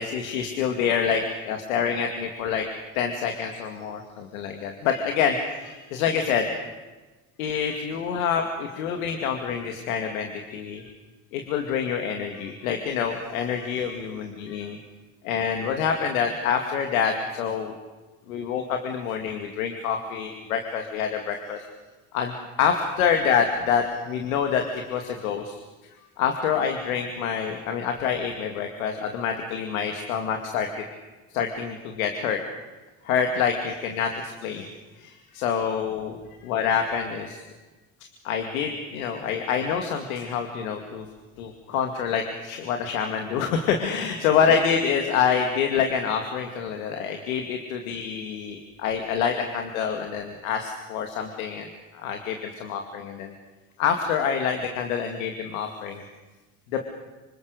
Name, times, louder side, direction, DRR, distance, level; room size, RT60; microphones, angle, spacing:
voice 1, 0.0-2.7 2.9-6.7 7.4-10.8 11.3-14.8 15.2-17.7 18.3-21.6 22.1-25.5 26.2-30.8 31.3-32.4 33.0-34.7 35.0-37.4 38.2-41.1 41.4-51.7 51.9-53.3 53.8-56.0 56.7-56.8, left 7 dB, 85° left, 4 dB, 2.4 m, -27 dB
26.5 x 25.5 x 6.7 m, 1.2 s
hypercardioid pair, 70°, 41 cm